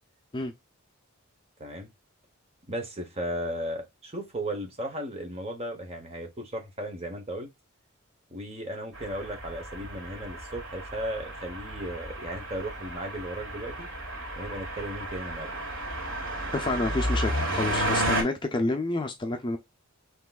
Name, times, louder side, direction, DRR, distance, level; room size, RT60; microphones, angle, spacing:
voice 1, 1.6-1.9 2.7-7.5 8.3-13.9 14.4-15.6, right 1 dB, 25° right, 1.1 m, -35 dB
sound 1, 8.9-18.2, right 1 dB, 80° right, 2.4 m, -32 dB
voice 2, 16.5-19.6, left 2 dB, 20° left, 0.5 m, -29 dB
5.9 x 3.0 x 2.4 m
head